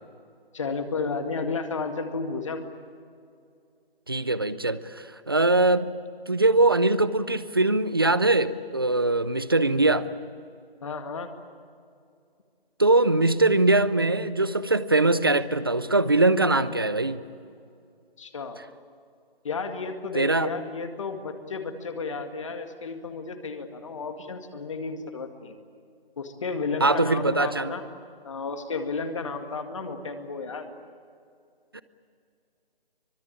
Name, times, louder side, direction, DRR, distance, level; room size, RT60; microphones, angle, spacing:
voice 1, 0.5-2.6 10.8-11.3 18.2-18.6 19.4-25.6 26.2-27.8 28.2-30.7, left 4 dB, 30° left, 6 dB, 2.1 m, -32 dB
voice 2, 4.1-5.9 6.3-10.1 12.8-17.2 20.1-20.5 26.8-27.7 31.7-31.8, right 2 dB, 25° right, 16 dB, 0.6 m, -22 dB
25.0 x 22.5 x 8.8 m, 2.4 s
figure-of-eight pair, 165°, 29 cm